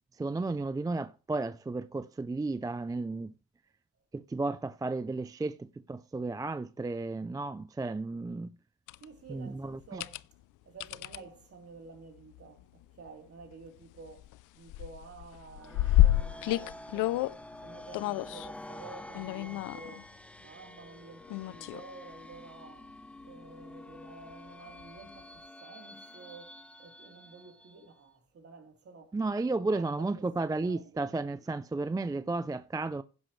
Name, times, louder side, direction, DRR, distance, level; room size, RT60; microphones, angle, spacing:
voice 1, 0.2-3.3 4.1-8.5 9.3-10.0 29.1-33.0, right 3 dB, 10° right, 0.4 m, -33 dB
sound 1, 8.9-9.0 9.8-10.2 10.8-11.2 12.4-12.6 13.1-13.2 13.4-14.4 14.7-17.4 17.9-18.5 19.1-20.0 21.3-21.8 22.3-22.4 24.8-24.9, left 15 dB, 85° left, 0.5 m, -29 dB
voice 2, 9.0-10.2 10.7-17.3 17.6-20.1 20.4-22.9 23.2-29.2 29.4-31.0, right 4 dB, 50° right, 3.4 m, -51 dB
sound 2, 15.5-28.0, left 1 dB, 5° left, 0.8 m, -49 dB
16.0 x 6.2 x 3.2 m
cardioid pair, 90°, 30 cm